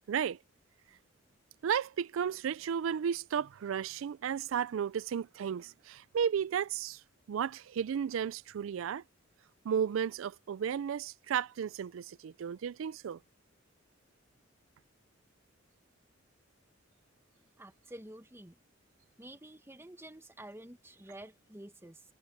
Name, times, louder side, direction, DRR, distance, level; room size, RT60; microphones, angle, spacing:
voice 1, 0.1-0.4 1.6-7.0 7.3-9.0 9.6-13.2, right 8 dB, 80° right, 0.4 m, -33 dB
voice 2, 17.6-18.6 19.2-22.0, right 1 dB, 10° right, 1.2 m, -49 dB
head